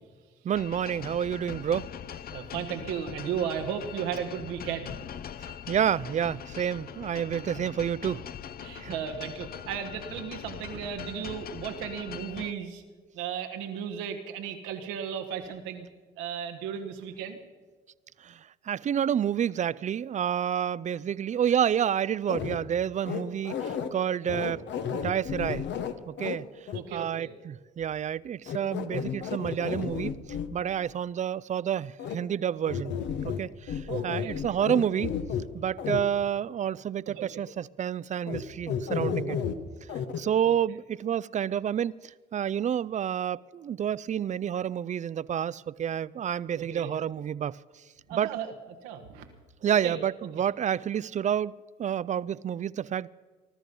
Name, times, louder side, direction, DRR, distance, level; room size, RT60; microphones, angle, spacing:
voice 1, 0.4-1.9 5.7-8.2 8.8-8.9 18.2-18.4 18.7-24.6 24.9-25.7 26.1-26.5 26.9-30.2 30.5-33.0 33.2-35.1 35.5-39.4 40.2-42.0 42.3-47.6 48.1-48.3 49.6-51.5 51.8-53.1, right 9 dB, 40° right, 0.4 m, -29 dB
sound 1, 0.5-12.5, left 9 dB, 50° left, 0.6 m, -41 dB
voice 2, 2.3-5.0 5.5-5.6 8.6-12.8 13.1-15.9 16.2-17.4 26.7-27.3 33.9-34.6 37.1-37.4 40.4-40.6 46.6-46.9 48.1-48.5 48.8-49.3 49.7-50.0 50.4-50.5, right 8 dB, 90° right, 1.4 m, -35 dB
sound 2, 22.3-22.6 23.0-23.9 24.3-26.4 26.7-26.8 28.5-30.5 32.0-32.1 32.7-33.4 33.7-35.5 35.8-36.0 38.3-38.4 38.7-39.5 39.9-40.2, left 7 dB, 65° left, 1.1 m, -32 dB
20.5 x 12.5 x 5.4 m
supercardioid pair, 65°, 20 cm